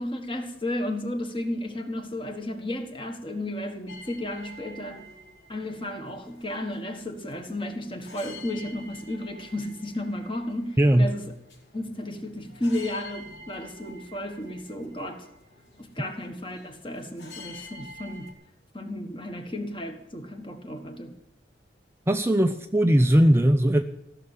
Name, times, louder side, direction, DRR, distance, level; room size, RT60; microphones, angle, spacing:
voice 1, 0.0-5.0 5.5-11.3 11.7-15.2 15.8-18.3 18.7-21.1, left 1 dB, 25° left, 1.5 m, -33 dB
sound 1, 3.9-18.3, left 2 dB, 80° left, 4.4 m, -49 dB
voice 2, 10.8-11.1 22.1-23.8, right 1 dB, 15° right, 0.4 m, -19 dB
15.5 x 6.8 x 9.1 m
head